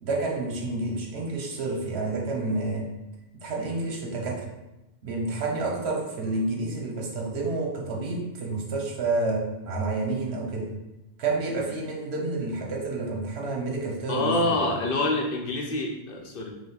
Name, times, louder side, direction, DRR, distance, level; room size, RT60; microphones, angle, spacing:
voice 1, 0.0-2.9 3.4-4.4 5.0-10.7 11.2-14.8, right 2 dB, 80° right, 0 dB, 1.1 m, -29 dB
voice 2, 14.1-16.5, left 2 dB, 60° left, 1 dB, 0.8 m, -26 dB
4.9 x 2.2 x 4.1 m, 0.94 s
omnidirectional pair, 1.1 m